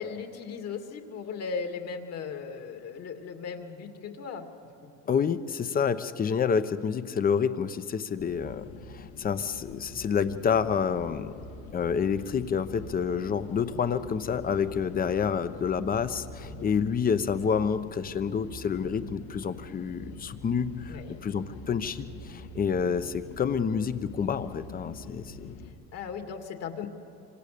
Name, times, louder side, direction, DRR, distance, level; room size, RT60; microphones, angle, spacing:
voice 1, 0.0-4.5 16.4-16.7 20.9-21.2 25.9-26.9, left 5 dB, 55° left, 5 dB, 2.5 m, -37 dB
voice 2, 5.1-11.3 11.7-25.5, left 6 dB, 30° left, 12 dB, 1.0 m, -28 dB
sound 1, 8.2-25.7, left 2 dB, 80° left, 2.4 m, -45 dB
26.0 x 26.0 x 6.9 m, 2.6 s
cardioid pair, 120°, 31 cm